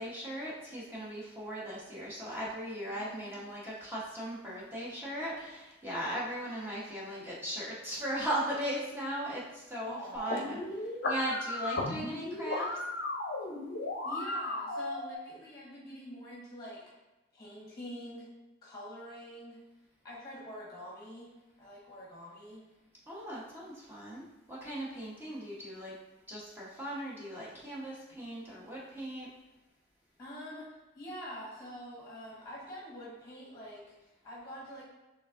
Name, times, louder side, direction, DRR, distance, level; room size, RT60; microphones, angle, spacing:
voice 1, 0.0-12.8 23.1-26.0 26.3-29.3, equal, 10° right, -7 dB, 1.0 m, -38 dB
voice 2, 3.0-3.4 9.9-10.6 14.0-16.8 17.3-18.3 18.6-19.6 20.0-21.3 21.6-22.6 30.2-30.7 30.9-34.8, equal, 20° left, -6 dB, 1.2 m, -46 dB
sound 1, 10.1-15.1, left 2 dB, 60° left, 0.6 m, -35 dB
6.1 x 3.4 x 2.5 m, 1.1 s
head